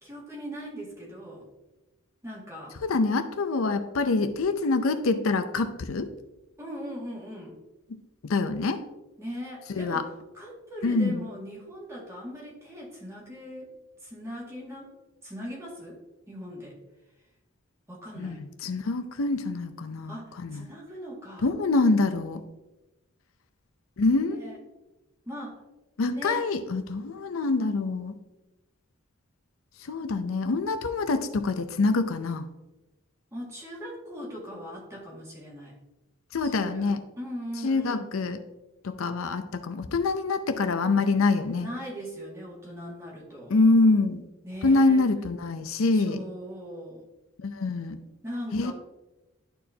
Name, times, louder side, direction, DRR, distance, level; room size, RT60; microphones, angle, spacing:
voice 1, 0.0-1.5 2.2-2.8 6.6-7.6 9.2-10.0 10.3-13.7 14.0-14.9 15.2-16.0 16.3-16.8 17.9-18.4 20.1-21.5 24.3-24.6 25.3-25.6 26.1-26.5 33.3-35.8 36.4-38.1 41.6-43.5 44.4-45.0 45.9-47.0 48.2-48.7, equal, 15° right, -5 dB, 2.0 m, -39 dB
voice 2, 2.8-6.1 8.2-8.8 9.7-10.0 10.8-11.2 18.2-20.6 21.4-22.4 24.0-24.5 26.0-28.1 29.8-32.5 36.3-37.0 37.6-38.4 38.8-41.7 43.5-44.2 44.6-46.2 47.4-48.0 48.5-48.7, left 3 dB, 75° left, 8 dB, 0.5 m, -25 dB
11.5 x 4.5 x 2.8 m, 1.0 s
head